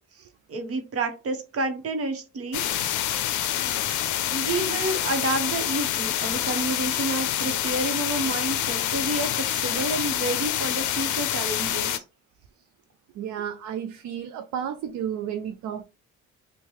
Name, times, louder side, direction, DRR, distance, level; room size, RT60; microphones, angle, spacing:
voice 1, 0.1-2.8 3.6-3.7 4.3-12.0, right 2 dB, 50° right, 0.9 m, -30 dB
sound 1, 2.5-12.0, left 11 dB, 75° left, 0.5 m, -27 dB
voice 2, 13.1-15.8, right 9 dB, 65° right, 0.4 m, -32 dB
2.9 x 2.2 x 3.1 m
cardioid pair, 90°, 30 cm